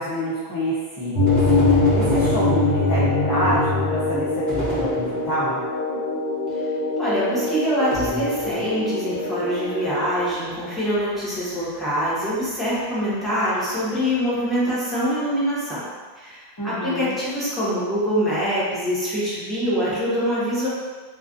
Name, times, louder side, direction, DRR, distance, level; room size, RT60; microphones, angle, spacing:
voice 1, 0.0-1.4 1.9-5.6 16.6-17.2, equal, 35° left, -12 dB, 0.3 m, -26 dB
sound 1, 1.1-10.5, left 2 dB, 65° left, 0.8 m, -23 dB
sound 2, 1.3-3.2 4.5-5.7 7.9-8.9, equal, 45° right, 0.8 m, -31 dB
voice 2, 7.0-15.8 16.2-20.7, equal, ahead, -11 dB, 0.7 m, -24 dB
2.3 x 2.3 x 2.5 m, 1.4 s
omnidirectional pair, 1.1 m